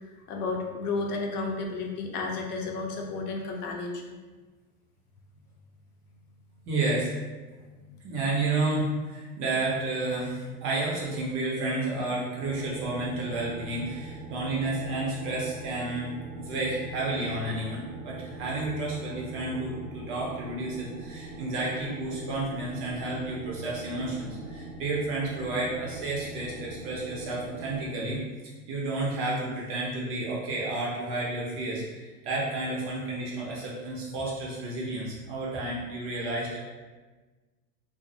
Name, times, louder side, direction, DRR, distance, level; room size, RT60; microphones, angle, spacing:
voice 1, 0.1-4.1 7.8-8.0, left 3 dB, 70° left, 1 dB, 0.6 m, -32 dB
voice 2, 6.7-7.1 8.0-28.2 28.7-36.6, right 2 dB, 30° right, -4 dB, 0.4 m, -31 dB
sound 1, 12.4-27.9, right 2 dB, 75° right, 0.6 m, -42 dB
2.3 x 2.0 x 2.7 m, 1.3 s
hypercardioid pair, 115°, 47 cm